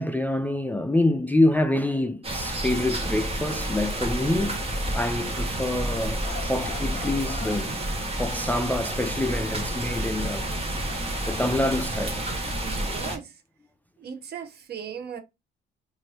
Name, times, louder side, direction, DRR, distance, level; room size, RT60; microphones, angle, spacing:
voice 1, 0.0-4.6 4.9-7.8 8.2-10.7 11.3-12.2, left 1 dB, 10° left, 0.3 m, -26 dB
sound 1, 2.2-13.2, right 1 dB, 30° right, 1.1 m, -30 dB
Growling, 6.2-8.3 8.8-10.6 10.9-13.2, left 8 dB, 60° left, 0.7 m, -44 dB
voice 2, 12.6-13.4 14.0-15.2, right 8 dB, 55° right, 0.7 m, -37 dB
2.7 x 2.6 x 3.2 m
cardioid pair, 90°, 20 cm